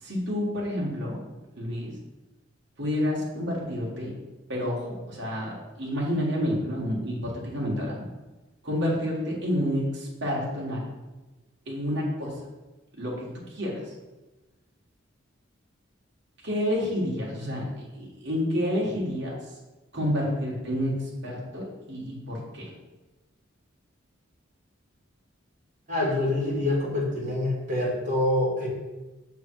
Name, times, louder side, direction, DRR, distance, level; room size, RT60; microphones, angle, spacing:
voice 1, 0.0-1.2 1.6-1.9 2.8-4.1 4.5-8.0 8.6-10.9 11.7-12.3 13.0-13.9 16.4-19.4 19.9-20.9 21.2-22.7, equal, 55° right, -4 dB, 1.5 m, -29 dB
voice 2, 25.9-28.7, left 1 dB, 35° right, -5 dB, 1.7 m, -26 dB
6.5 x 3.4 x 4.6 m, 1.1 s
head